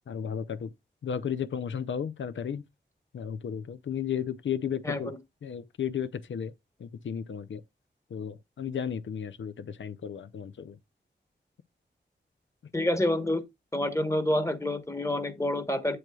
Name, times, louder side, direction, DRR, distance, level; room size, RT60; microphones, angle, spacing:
voice 1, 0.1-0.7 1.0-2.6 3.1-5.1 5.4-6.5 6.8-7.6 8.1-10.8, left 8 dB, 90° left, 0.5 m, -34 dB
voice 2, 4.8-5.2 12.7-13.4 13.7-16.0, left 1 dB, 15° left, 1.1 m, -28 dB
7.8 x 7.6 x 2.3 m
wide cardioid pair, 90°, 19 cm